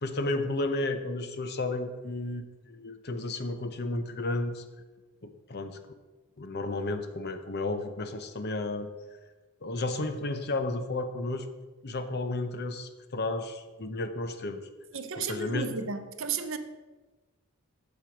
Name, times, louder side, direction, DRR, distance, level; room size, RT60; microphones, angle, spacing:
voice 1, 0.0-4.6 5.2-5.8 6.4-8.9 9.6-11.5 11.8-14.6 15.2-15.7, left 2 dB, 45° left, 9 dB, 0.7 m, -32 dB
voice 2, 14.9-16.6, right 5 dB, 60° right, 9 dB, 0.7 m, -33 dB
7.5 x 7.5 x 5.0 m, 1.2 s
head